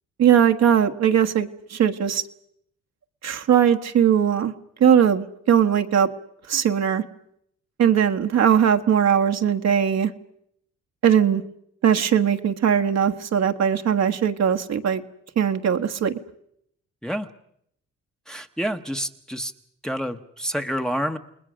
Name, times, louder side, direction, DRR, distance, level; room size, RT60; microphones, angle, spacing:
voice 1, 0.2-2.2 3.2-4.5 4.8-6.1 6.5-7.0 7.8-10.1 11.0-11.4 11.8-15.0 15.4-16.2, right 8 dB, 60° right, 7 dB, 1.5 m, -19 dB
voice 2, 18.3-19.5 19.8-21.2, equal, ahead, 5 dB, 1.2 m, -28 dB
29.0 x 20.0 x 6.3 m, 0.72 s
cardioid pair, 90°, 30 cm